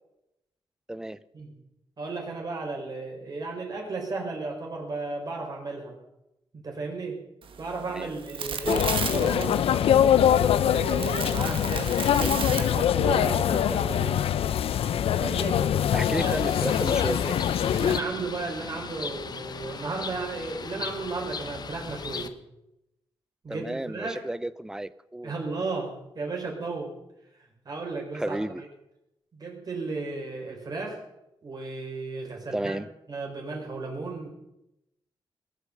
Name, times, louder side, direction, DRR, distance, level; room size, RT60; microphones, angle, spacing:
voice 1, 0.9-1.2 7.9-8.1 8.6-8.9 12.2-12.5 15.9-17.4 23.5-25.3 28.1-28.6 32.5-32.9, right 1 dB, 5° right, 17 dB, 0.5 m, -32 dB
voice 2, 2.0-6.0 6.6-7.2 7.6-9.6 10.6-11.9 12.5-14.2 15.1-15.6 16.2-16.3 17.7-22.3 23.4-24.2 25.2-26.9 27.6-28.7 29.3-31.0 31.4-32.8 33.1-34.3, right 3 dB, 45° right, 0 dB, 4.6 m, -34 dB
sound 1, 7.4-13.3, right 6 dB, 65° right, 1.4 m, -35 dB
sound 2, 8.7-18.0, left 9 dB, 85° left, 0.6 m, -23 dB
Bird, 16.0-22.3, left 5 dB, 45° left, 1.0 m, -37 dB
20.0 x 8.2 x 6.6 m, 0.88 s
wide cardioid pair, 115°, 10 cm